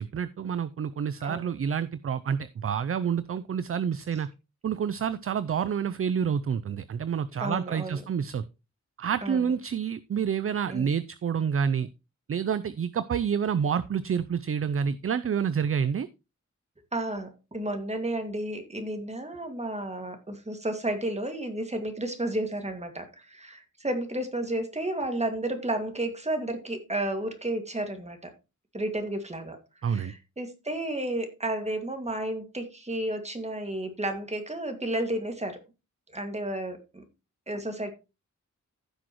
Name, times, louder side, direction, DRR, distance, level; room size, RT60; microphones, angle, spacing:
voice 1, 0.0-4.3 4.6-8.4 9.0-11.9 12.3-16.1 29.8-30.1, right 7 dB, 50° right, 15 dB, 0.4 m, -28 dB
voice 2, 1.2-1.5 7.4-8.0 9.2-9.5 10.7-10.9 16.9-28.3 28.7-35.6 36.1-37.0 37.5-37.9, right 1 dB, 20° right, 6 dB, 2.1 m, -32 dB
15.0 x 6.2 x 3.0 m, 0.28 s
wide cardioid pair, 95°, 30 cm